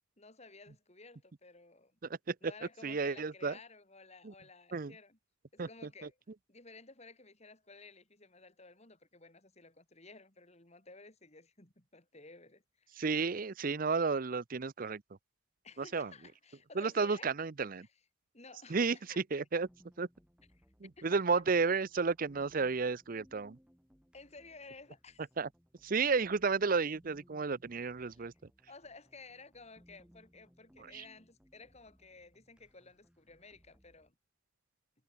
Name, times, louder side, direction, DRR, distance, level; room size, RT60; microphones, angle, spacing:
voice 1, 0.2-2.0 2.4-5.2 5.5-6.2 6.5-13.0 15.6-17.3 17.8-18.0 18.3-19.2 19.5-19.7 21.0-21.4 24.1-25.3 28.0-28.3 28.7-34.1, left 3 dB, 35° left, 4.1 m, -55 dB
voice 2, 2.8-3.5 4.2-4.3 4.7-4.9 5.6-5.7 6.0-6.1 13.0-15.0 15.9-16.1 16.8-17.9 18.7-19.7 20.0-20.1 20.8-23.6 25.4-25.5 25.8-28.3 30.9-31.0, right 4 dB, 45° right, 0.6 m, -32 dB
sound 1, 19.6-34.1, equal, 5° right, 4.0 m, -66 dB
head